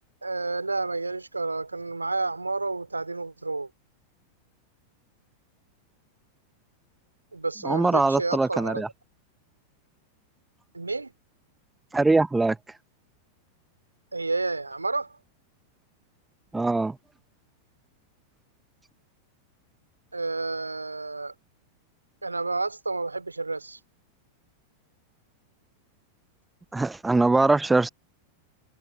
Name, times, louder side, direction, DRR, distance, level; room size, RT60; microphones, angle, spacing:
voice 1, 0.2-3.7 7.3-8.8 10.7-11.1 14.1-15.2 20.1-21.3 22.2-23.8, right 3 dB, 80° right, 2.8 m, -30 dB
voice 2, 7.6-8.9 11.9-12.6 16.5-17.0 26.7-27.9, right 3 dB, 10° right, 0.8 m, -22 dB
figure-of-eight pair, 90°, 0 cm